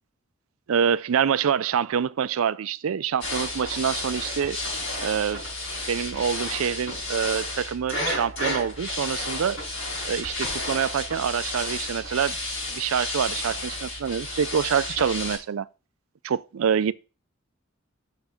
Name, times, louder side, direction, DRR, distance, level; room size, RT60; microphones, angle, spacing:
voice 1, 0.7-4.6 5.0-5.4 5.9-9.6 10.1-12.4 12.7-15.7 16.2-16.9, right 7 dB, 85° right, 0.4 m, -26 dB
sound 1, 3.2-15.4, left 2 dB, 70° left, 5.0 m, -32 dB
6.6 x 4.9 x 5.1 m
head